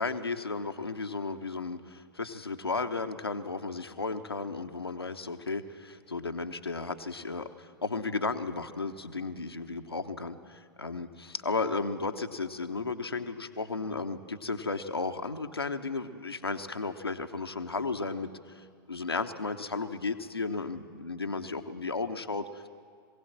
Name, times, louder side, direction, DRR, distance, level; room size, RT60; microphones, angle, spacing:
voice 1, 0.0-22.7, left 3 dB, 85° left, 6 dB, 0.9 m, -34 dB
21.5 x 17.0 x 7.5 m, 2.2 s
figure-of-eight pair, 95°, 13 cm